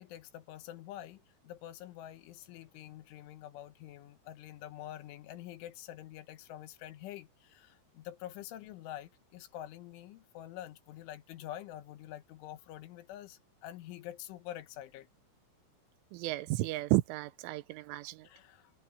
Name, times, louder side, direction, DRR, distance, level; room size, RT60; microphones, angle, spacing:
voice 1, 0.0-15.1 18.2-18.7, left 12 dB, 85° left, 3.7 m, -47 dB
voice 2, 16.1-18.3, right 19 dB, 90° right, 3.3 m, -32 dB
omnidirectional pair, 5.4 m